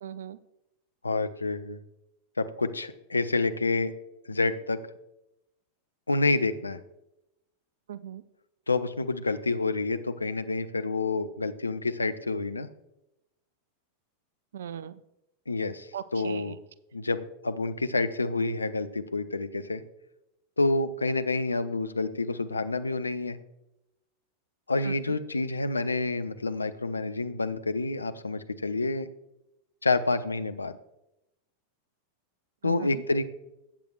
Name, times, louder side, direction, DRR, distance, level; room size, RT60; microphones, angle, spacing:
voice 1, 0.0-0.4 7.9-8.2 14.5-14.9 15.9-16.5 24.8-24.9 32.6-33.0, right 9 dB, 60° right, 17 dB, 0.4 m, -38 dB
voice 2, 1.0-1.8 2.4-3.9 4.3-4.8 6.1-6.8 8.7-12.7 15.5-16.6 16.9-19.8 20.6-23.4 24.7-29.1 29.8-30.8 32.6-33.2, left 3 dB, 80° left, 10 dB, 0.5 m, -28 dB
14.5 x 8.5 x 2.3 m, 0.88 s
figure-of-eight pair, 90°, 0 cm